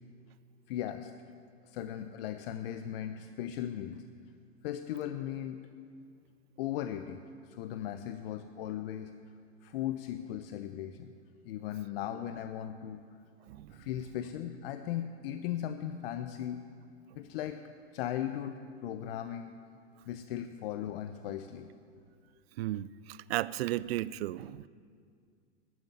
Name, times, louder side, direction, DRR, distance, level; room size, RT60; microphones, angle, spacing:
voice 1, 0.7-1.1 1.6-4.0 4.6-5.6 6.6-9.1 9.6-11.1 11.4-13.1 13.7-16.6 17.2-17.6 17.9-19.6 20.1-21.7, left 11 dB, 55° left, 9 dB, 0.8 m, -37 dB
voice 2, 22.6-24.7, right 15 dB, 60° right, 19 dB, 0.5 m, -34 dB
12.5 x 9.1 x 9.7 m, 2.2 s
hypercardioid pair, 110°, 35 cm